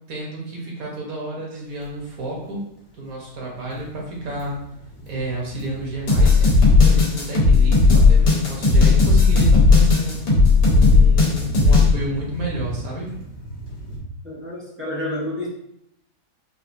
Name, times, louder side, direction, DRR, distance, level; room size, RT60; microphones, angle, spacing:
voice 1, 0.1-2.6 3.0-4.5 5.1-10.4 10.7-13.1, right 2 dB, 60° right, -3 dB, 1.2 m, -31 dB
sound 1, 1.7-2.6 3.1-14.0, equal, 60° left, 1.3 m, -36 dB
sound 2, 6.1-11.9, left 3 dB, 80° left, 1.5 m, -14 dB
voice 2, 14.2-15.5, left 1 dB, 20° right, -7 dB, 0.3 m, -29 dB
4.2 x 2.4 x 2.5 m, 0.79 s
omnidirectional pair, 1.7 m